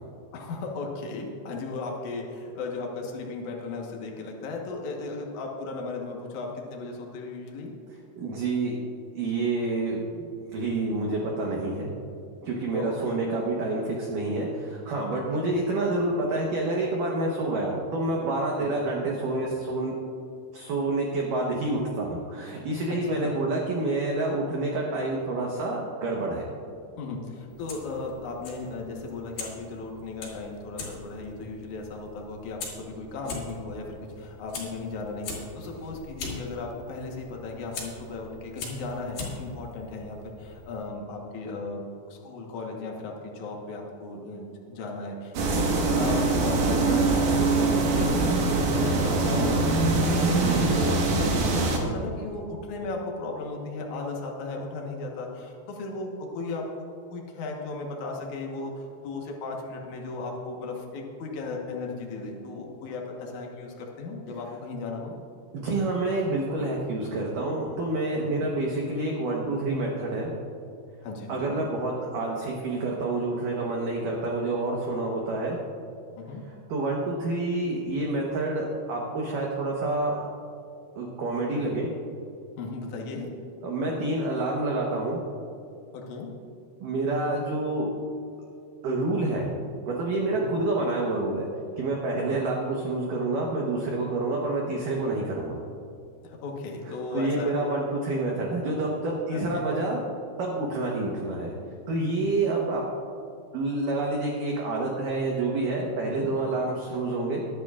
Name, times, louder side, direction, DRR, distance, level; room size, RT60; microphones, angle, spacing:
voice 1, 0.3-7.7 12.7-13.2 15.1-15.4 18.6-18.7 23.1-23.4 27.0-56.6 57.1-65.1 68.2-68.5 71.0-71.7 76.2-76.4 82.6-83.3 85.9-86.3 90.4-90.6 92.1-92.4 96.2-97.6 99.3-99.7 106.0-106.3, left 3 dB, 80° left, 0 dB, 1.7 m, -36 dB
voice 2, 8.2-8.7 9.1-11.9 12.4-19.9 20.5-26.5 50.4-50.9 65.5-70.3 71.3-75.6 76.7-80.3 81.0-81.9 83.6-85.2 86.8-87.9 88.8-89.5 89.9-91.5 91.8-95.6 97.1-100.0 100.4-101.5 101.9-102.8 103.5-107.4, right 2 dB, 85° right, -2 dB, 1.8 m, -28 dB
Fire, 27.5-40.9, left 4 dB, 55° left, 3.9 m, -42 dB
sound 1, 45.3-51.8, right 3 dB, 60° right, 2.2 m, -23 dB
21.0 x 10.5 x 2.5 m, 2.5 s
omnidirectional pair, 5.5 m